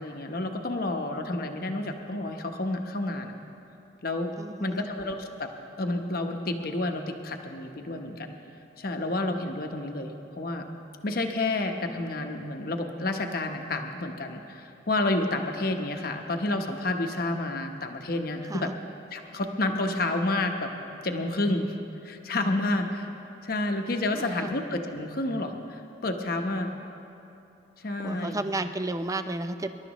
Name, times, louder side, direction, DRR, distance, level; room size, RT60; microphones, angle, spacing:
voice 1, 0.0-3.3 4.0-4.3 4.6-5.5 5.8-8.4 8.8-10.6 11.0-18.7 19.1-20.7 21.0-21.8 22.0-23.1 23.4-26.7 27.8-28.4, left 2 dB, 55° left, 4 dB, 0.9 m, -30 dB
voice 2, 4.4-4.9 18.5-18.8 24.2-24.6 28.0-29.7, right 2 dB, 20° right, 9 dB, 0.5 m, -32 dB
25.5 x 12.0 x 3.0 m, 2.9 s
head